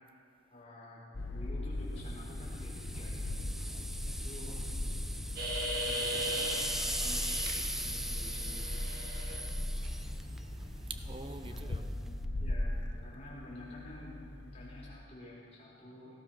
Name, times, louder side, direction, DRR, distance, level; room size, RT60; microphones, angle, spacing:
voice 1, 0.5-3.2 4.2-4.6 5.8-8.9 11.5-16.1, left 1 dB, 35° left, 5.0 m, -50 dB
sound 1, 1.1-15.0, left 1 dB, 65° left, 1.0 m, -39 dB
sound 2, 2.0-12.3, right 1 dB, ahead, 0.5 m, -40 dB
voice 2, 5.4-5.9 9.7-11.9, right 3 dB, 30° right, 0.9 m, -49 dB
sound 3, 5.4-7.5 7.9-9.4 9.8-9.9, equal, 55° right, 2.4 m, -37 dB
18.0 x 13.0 x 5.9 m
head